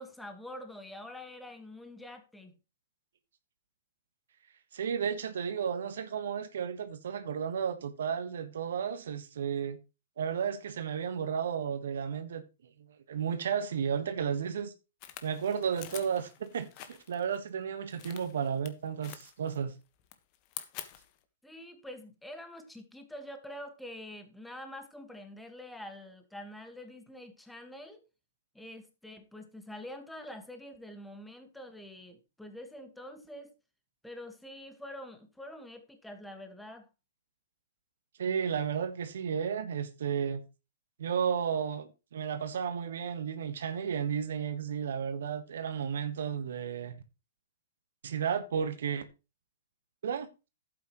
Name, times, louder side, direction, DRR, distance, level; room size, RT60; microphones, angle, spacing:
voice 1, 0.0-2.5 21.4-28.0 28.5-33.5 34.0-36.9, left 1 dB, 5° left, 1.7 m, -46 dB
voice 2, 4.7-9.8 10.2-12.4 13.1-14.7 15.2-19.7 38.2-40.4 41.0-47.0 48.0-49.0 50.0-50.3, right 7 dB, 70° right, 1.4 m, -33 dB
sound 1, 15.0-17.4 17.9-18.7 19.0-19.7 20.0-21.2, left 12 dB, 40° left, 1.4 m, -47 dB
11.5 x 8.6 x 3.1 m
hypercardioid pair, 125°, 0 cm